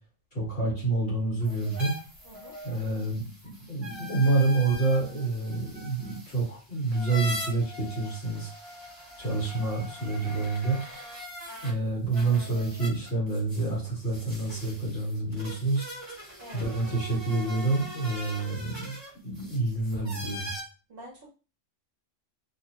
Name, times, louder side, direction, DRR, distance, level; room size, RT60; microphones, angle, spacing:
voice 1, 0.3-1.9 2.6-8.5 9.2-10.8 11.6-15.8 16.5-18.9 19.2-20.5, right 3 dB, 50° left, -6 dB, 1.6 m, -28 dB
sound 1, 1.4-11.7 12.1-20.6, left 1 dB, 25° right, 1.0 m, -42 dB
voice 2, 20.9-21.3, right 1 dB, 55° right, -1 dB, 0.9 m, -46 dB
3.1 x 2.0 x 2.9 m, 0.34 s
omnidirectional pair, 1.3 m